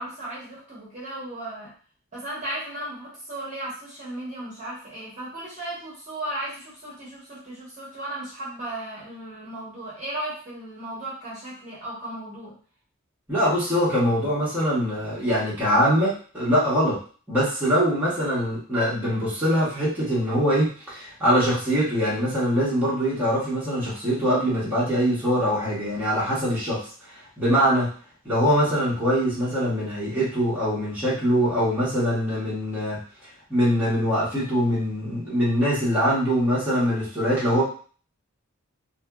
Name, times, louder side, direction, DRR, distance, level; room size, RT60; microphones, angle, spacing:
voice 1, 0.0-1.7 2.1-12.5, right 1 dB, 35° right, -7 dB, 1.1 m, -35 dB
voice 2, 13.3-17.0 17.3-26.8 27.4-27.9 28.2-33.0 33.5-37.6, equal, 10° right, -10 dB, 1.1 m, -23 dB
2.7 x 2.6 x 2.3 m, 0.41 s
head